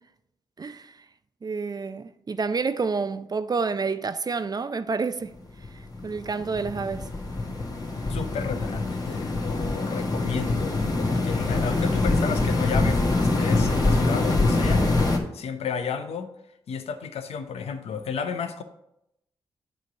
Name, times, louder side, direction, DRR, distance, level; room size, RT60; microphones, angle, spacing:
voice 1, 0.6-1.0 1.4-5.3 6.0-7.1, right 4 dB, 40° right, 0.5 m, -28 dB
sound 1, 5.3-15.2, left 2 dB, 35° left, 1.5 m, -24 dB
voice 2, 8.1-14.9 15.3-16.3 16.7-18.6, left 6 dB, 70° left, 0.7 m, -32 dB
8.1 x 3.2 x 6.4 m
supercardioid pair, 45°, 11 cm